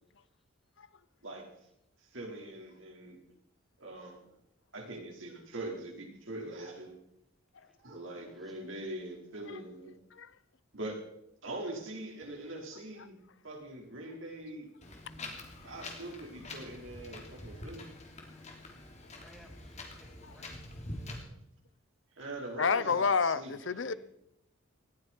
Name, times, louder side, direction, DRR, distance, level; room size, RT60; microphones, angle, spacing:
voice 1, 2.0-3.2 3.8-4.2 4.7-6.9 7.8-9.9 10.7-11.0 11.4-13.2 13.4-14.7 15.2-15.3 15.6-17.9 22.1-24.0, right 1 dB, 75° right, 4.8 m, -43 dB
voice 2, 8.1-8.6 19.2-20.9, equal, ahead, 2.4 m, -61 dB
Wind, 14.8-21.2, left 2 dB, 35° left, 3.1 m, -46 dB
voice 3, 22.6-23.9, left 5 dB, 65° left, 0.7 m, -28 dB
19.0 x 14.5 x 4.6 m
head